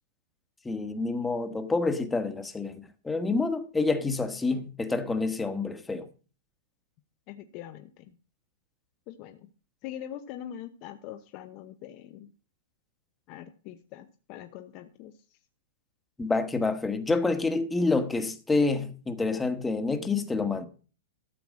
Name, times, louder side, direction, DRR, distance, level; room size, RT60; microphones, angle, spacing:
voice 1, 0.6-6.1 16.2-20.7, left 3 dB, 10° left, 1.3 m, -28 dB
voice 2, 7.3-8.2 9.1-9.5 9.8-12.3 13.3-15.1, left 11 dB, 40° left, 0.8 m, -43 dB
13.0 x 4.6 x 7.4 m
hypercardioid pair, 140°, 0 cm